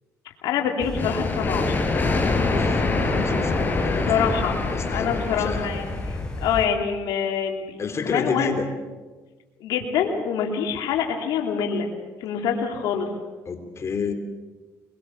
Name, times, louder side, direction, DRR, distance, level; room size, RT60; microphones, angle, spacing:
voice 1, 0.4-1.8 4.1-4.6 4.9-7.8 8.0-8.5 9.6-11.9 12.2-13.1, left 7 dB, 80° left, 2 dB, 3.0 m, -25 dB
sound 1, 0.8-6.7, left 2 dB, 10° left, 5.5 m, -33 dB
sound 2, 0.9-6.5, left 3 dB, 30° left, 4.7 m, -25 dB
voice 2, 2.5-4.3 4.7-5.7 7.8-8.6 13.5-14.1, left 5 dB, 45° left, 6 dB, 3.8 m, -30 dB
23.0 x 22.5 x 7.0 m, 1.3 s
cardioid pair, 85°, 7 cm